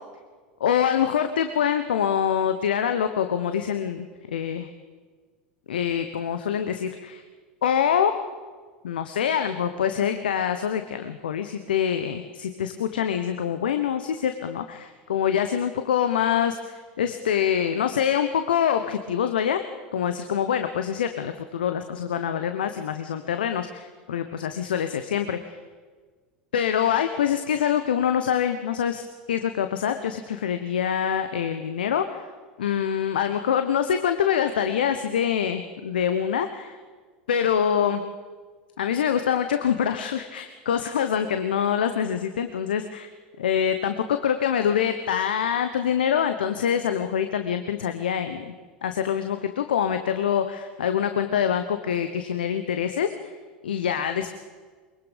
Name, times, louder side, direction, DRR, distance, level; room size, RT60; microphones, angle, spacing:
voice 1, 0.6-4.7 5.7-7.2 7.6-8.1 8.8-19.6 19.9-25.6 26.5-29.0 29.3-32.2 32.6-36.8 37.3-38.0 38.8-43.1 43.4-48.5 48.8-53.1 53.6-54.4, left 8 dB, 70° left, 8 dB, 1.1 m, -25 dB
23.0 x 22.0 x 5.3 m, 1.5 s
figure-of-eight pair, 80°, 5 cm